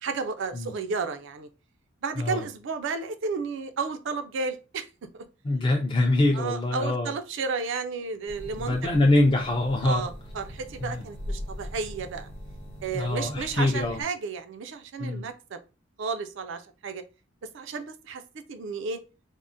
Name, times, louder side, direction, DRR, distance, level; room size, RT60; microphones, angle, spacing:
voice 1, 0.0-1.5 2.0-4.9 5.1-5.2 6.3-8.9 9.8-12.3 12.8-15.6 16.0-17.0 17.5-18.2 18.5-19.0, right 4 dB, 65° right, 9 dB, 0.4 m, -32 dB
voice 2, 5.4-7.1 8.6-10.1 10.8-11.0 12.9-14.0 15.0-15.2, left 2 dB, 25° left, 1 dB, 0.4 m, -24 dB
sound 1, 8.3-14.0, equal, 60° left, 0.7 m, -40 dB
3.6 x 2.0 x 2.5 m, 0.31 s
head